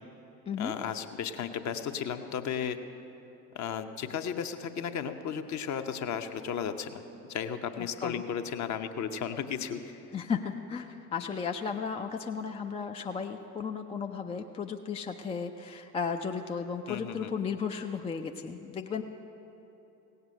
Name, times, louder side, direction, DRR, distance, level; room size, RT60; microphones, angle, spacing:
voice 1, 0.6-2.8 3.5-7.0 7.3-9.8 16.9-17.3, left 8 dB, 35° left, 8 dB, 0.8 m, -34 dB
voice 2, 10.1-19.0, left 6 dB, 15° left, 4 dB, 0.4 m, -34 dB
17.0 x 8.1 x 6.5 m, 3.0 s
figure-of-eight pair, 55°, 48 cm